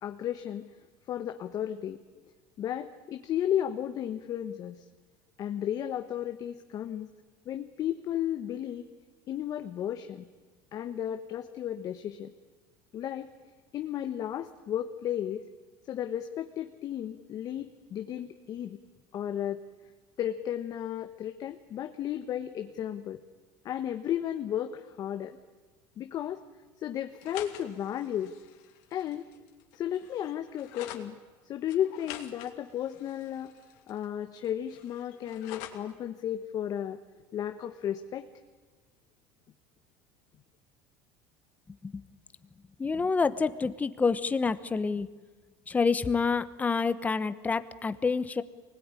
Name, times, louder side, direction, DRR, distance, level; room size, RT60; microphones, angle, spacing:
voice 1, 0.0-0.7 1.1-2.0 2.6-4.8 5.4-7.1 7.4-8.9 9.3-10.2 10.7-12.3 12.9-13.3 13.7-15.5 15.9-18.8 19.1-19.6 20.2-23.2 23.6-25.4 26.0-26.4 26.8-28.3 28.9-29.3 29.7-31.2 31.4-33.5 33.9-37.0 37.3-38.3, left 10 dB, 45° left, 6 dB, 1.3 m, -34 dB
sound 1, 27.1-31.1 31.7-34.1 34.4-35.9, left 12 dB, 75° left, 2.7 m, -46 dB
voice 2, 42.8-45.1 45.7-48.4, left 4 dB, 15° left, 13 dB, 1.1 m, -28 dB
24.5 x 20.0 x 9.8 m, 1.4 s
cardioid pair, 130°, 9 cm